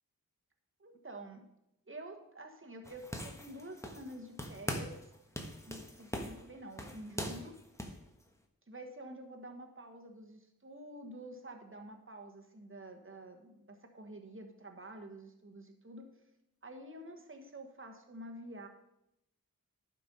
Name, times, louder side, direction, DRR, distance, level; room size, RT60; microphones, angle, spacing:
voice 1, 0.8-1.5 1.9-5.0 5.7-7.6 8.7-16.1 16.6-18.7, right 1 dB, 35° right, 4 dB, 1.3 m, -49 dB
sound 1, 2.8-4.1 4.4-5.0 5.4-8.0, equal, 10° left, 1.3 m, -41 dB
11.0 x 4.6 x 5.4 m, 0.84 s
wide cardioid pair, 45°, 34 cm